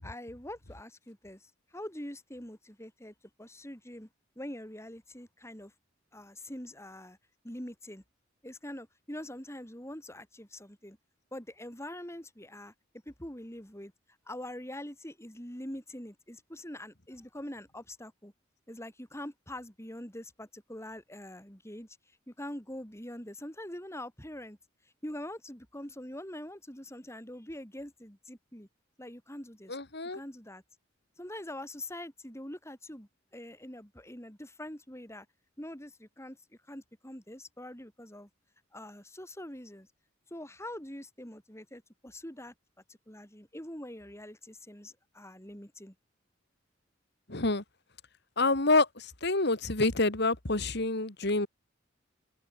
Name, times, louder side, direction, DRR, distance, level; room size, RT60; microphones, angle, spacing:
voice 1, 0.0-4.1 4.4-5.7 6.1-7.2 7.4-8.0 8.4-11.0 11.3-12.7 13.1-13.9 14.3-18.3 18.7-21.9 22.3-24.6 25.0-28.7 29.0-29.8 30.1-30.6 31.2-35.3 35.6-36.4 36.7-38.3 38.7-39.9 40.3-42.5 42.9-45.9, left 1 dB, 15° left, 7.8 m, -44 dB
voice 2, 29.7-30.2 47.3-47.6 48.4-51.5, left 2 dB, 55° left, 2.7 m, -27 dB
head